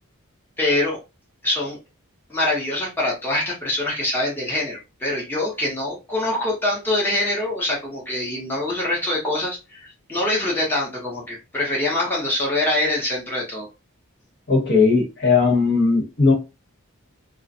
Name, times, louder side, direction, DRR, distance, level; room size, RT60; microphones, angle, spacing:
voice 1, 0.6-1.0 1.4-1.8 2.3-13.7, left 1 dB, 10° left, 0.8 m, -24 dB
voice 2, 14.5-16.3, left 4 dB, 50° left, 1.0 m, -18 dB
2.4 x 2.1 x 2.6 m
head